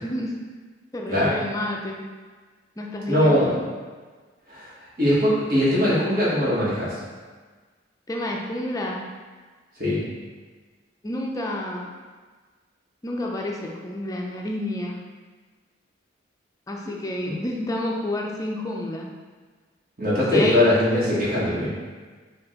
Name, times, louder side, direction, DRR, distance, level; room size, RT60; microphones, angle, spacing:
voice 1, 0.0-0.3 0.9-2.0 2.8-3.6 8.1-9.1 11.0-11.9 13.0-15.0 16.7-19.1 20.3-20.6, left 1 dB, 20° left, -1 dB, 0.4 m, -29 dB
voice 2, 3.1-3.6 4.5-4.7 5.0-7.0 9.8-10.0 17.3-17.4 20.0-21.7, left 1 dB, 50° right, -8 dB, 1.3 m, -21 dB
4.6 x 2.4 x 3.7 m, 1.4 s
head